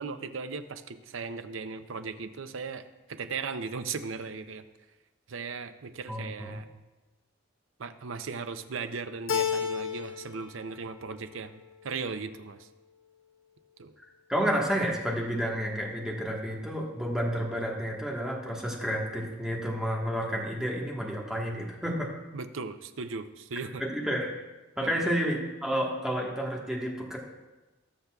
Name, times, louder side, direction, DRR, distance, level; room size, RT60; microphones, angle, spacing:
voice 1, 0.0-4.7 5.3-6.7 7.8-12.7 13.8-13.9 22.3-23.8 24.8-25.1, right 4 dB, 80° right, 9 dB, 0.6 m, -37 dB
voice 2, 6.1-6.6 14.3-22.1 23.8-24.3 24.8-27.2, equal, 5° right, -2 dB, 1.4 m, -30 dB
Keyboard (musical), 9.3-10.4 10.7-11.5, left 7 dB, 80° left, 0.7 m, -31 dB
19.5 x 6.7 x 2.4 m, 1.1 s
head